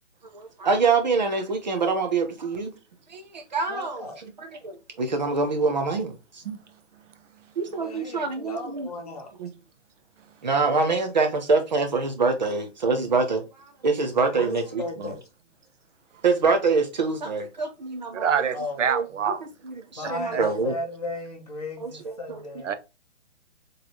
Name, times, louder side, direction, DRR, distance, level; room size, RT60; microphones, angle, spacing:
voice 1, 0.2-2.7 3.1-4.1 4.6-6.4 7.6-8.9 9.4-9.5 10.4-15.1 16.2-18.5 18.9-19.1 19.6-20.7 21.8-22.4, right 4 dB, 35° right, 0.8 m, -25 dB
voice 2, 3.7-4.2 7.8-9.3 14.3-15.2 18.5-18.8 20.0-22.7, left 2 dB, 30° left, 0.8 m, -35 dB
voice 3, 18.1-19.4 20.3-20.4 22.6-22.7, right 7 dB, 85° right, 0.7 m, -26 dB
4.2 x 3.3 x 2.8 m
hypercardioid pair, 175°, 36 cm